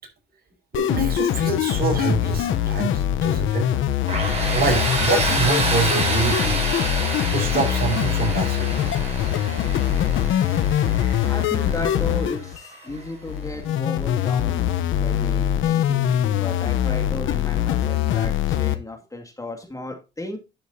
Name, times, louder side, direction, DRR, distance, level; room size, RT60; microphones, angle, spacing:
sound 1, 0.7-18.8, left 11 dB, 80° left, 0.9 m, -23 dB
voice 1, 0.7-3.7 4.5-6.6 7.3-8.7, right 4 dB, 50° right, 3 dB, 5.7 m, -25 dB
Tools, 4.1-12.8, right 2 dB, 30° right, 5.7 m, -28 dB
voice 2, 11.2-20.4, left 2 dB, 15° left, 3 dB, 2.3 m, -34 dB
11.5 x 6.9 x 2.8 m, 0.28 s
cardioid pair, 90°, 20 cm